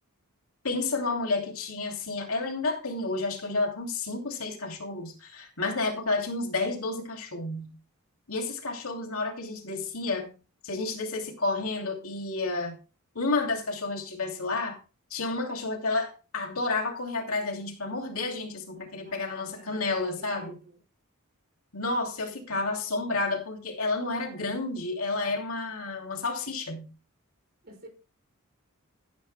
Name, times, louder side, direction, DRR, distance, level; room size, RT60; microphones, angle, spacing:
voice 1, 0.6-7.7 8.3-10.3 10.6-12.8 13.1-14.8 15.1-20.5 21.7-26.9, left 3 dB, 75° left, 2.8 m, -30 dB
voice 2, 19.0-19.8 20.2-20.8 27.6-27.9, right 1 dB, 45° right, 5.1 m, -50 dB
15.0 x 10.5 x 2.3 m
head